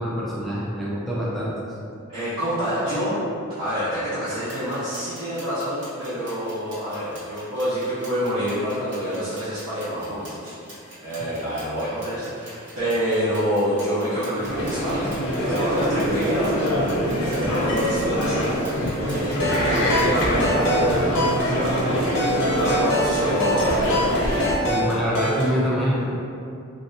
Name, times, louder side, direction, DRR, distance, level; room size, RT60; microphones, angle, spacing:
voice 1, 0.0-1.5 24.6-26.1, equal, ahead, -7 dB, 0.3 m, -25 dB
voice 2, 2.1-3.1 3.6-10.6 11.0-16.8 17.1-18.6 19.0-20.9 21.4-24.1, equal, 85° right, -14 dB, 0.9 m, -27 dB
sound 1, 4.3-20.3, right 1 dB, 55° right, 1.1 m, -45 dB
sound 2, 14.4-24.5, equal, 60° left, 0.6 m, -24 dB
sound 3, 19.2-25.5, equal, 80° left, 0.9 m, -26 dB
3.2 x 2.6 x 2.7 m, 2.5 s
head